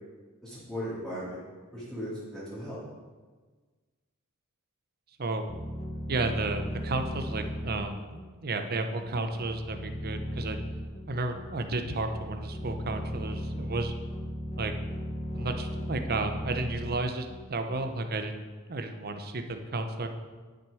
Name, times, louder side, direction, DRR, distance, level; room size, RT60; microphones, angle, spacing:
voice 1, 0.4-1.4 1.7-2.8, equal, 5° left, -11 dB, 2.6 m, -37 dB
sound 1, 5.5-18.0, equal, 30° left, 0.9 m, -37 dB
voice 2, 6.1-10.6 11.1-13.9 14.6-14.7 15.3-20.1, right 2 dB, 45° right, 7 dB, 0.8 m, -32 dB
10.5 x 6.2 x 5.0 m, 1.4 s
head